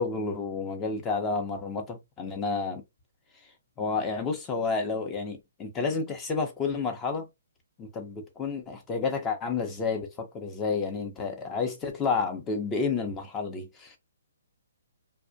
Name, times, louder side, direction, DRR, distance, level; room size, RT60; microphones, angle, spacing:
voice 1, 0.0-2.8 3.8-7.3 7.8-14.0, left 4 dB, 15° left, 0.6 m, -30 dB
2.4 x 2.1 x 2.5 m
hypercardioid pair, 150°, 0 cm